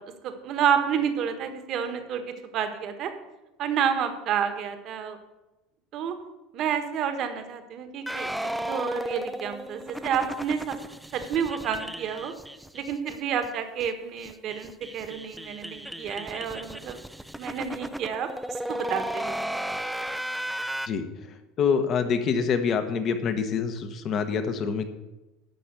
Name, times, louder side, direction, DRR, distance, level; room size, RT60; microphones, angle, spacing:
voice 1, 0.0-3.1 3.6-5.2 5.9-6.1 6.5-8.3 8.6-10.8 11.1-12.3 12.7-17.0 17.4-19.4, right 8 dB, 45° right, 8 dB, 1.4 m, -29 dB
sound 1, 8.1-13.2 13.4-13.5 13.8-13.9 14.2-20.9, right 1 dB, ahead, 0.4 m, -35 dB
voice 2, 21.6-24.9, left 6 dB, 35° left, 8 dB, 1.2 m, -26 dB
12.0 x 5.2 x 8.3 m, 1.0 s
cardioid pair, 150°, 0 cm